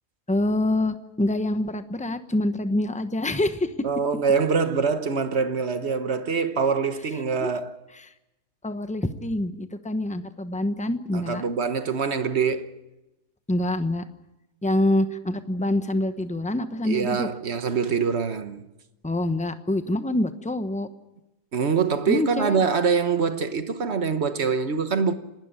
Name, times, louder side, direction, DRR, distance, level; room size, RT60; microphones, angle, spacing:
voice 1, 0.3-3.7 7.4-7.5 8.0-8.1 8.6-11.4 13.5-14.1 14.6-17.3 19.0-20.9 22.1-22.7, left 1 dB, 5° left, 0.8 m, -26 dB
voice 2, 3.8-7.7 11.1-12.7 16.8-18.6 21.5-25.1, right 5 dB, 45° right, 1.3 m, -24 dB
29.5 x 12.5 x 8.9 m
omnidirectional pair, 1.7 m